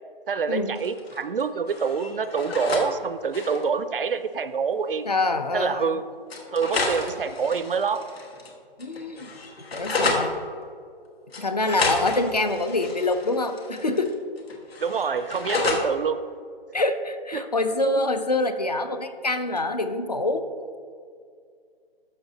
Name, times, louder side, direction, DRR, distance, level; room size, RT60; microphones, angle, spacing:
voice 1, 0.3-5.0 5.5-6.0 6.5-8.0 14.8-16.2 17.3-17.5, right 5 dB, 60° right, 12 dB, 0.5 m, -26 dB
sound 1, 0.8-1.4 1.7-2.9 3.2-3.7 4.8-4.9 5.2-5.3 6.3-8.5 8.8-10.3 11.3-14.1 14.4-15.9, left 3 dB, 75° left, 1.4 m, -30 dB
voice 2, 5.1-5.9 8.8-9.3 9.7-10.4 11.4-14.1 16.7-20.5, left 2 dB, 45° left, 9 dB, 0.4 m, -25 dB
11.5 x 6.2 x 2.7 m, 2.2 s
hypercardioid pair, 175°, 30 cm